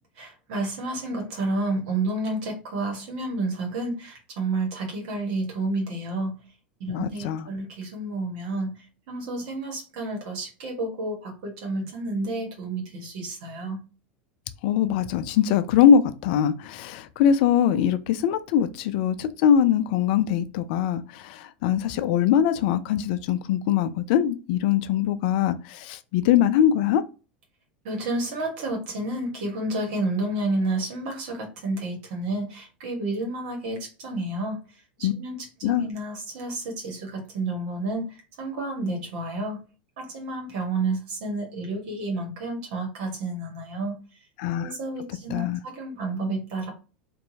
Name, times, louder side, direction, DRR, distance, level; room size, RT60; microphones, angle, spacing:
voice 1, 0.2-6.3 6.8-8.7 9.1-13.8 27.8-34.6 35.0-38.0 38.4-39.6 40.0-44.0 44.6-46.7, right 2 dB, 60° right, 1.0 m, -30 dB
voice 2, 6.9-7.5 14.6-27.0 35.0-35.1 35.6-35.9 44.4-44.7 45.3-45.6, left 9 dB, 60° left, 0.4 m, -22 dB
2.7 x 2.2 x 2.7 m
hypercardioid pair, 90°, 6 cm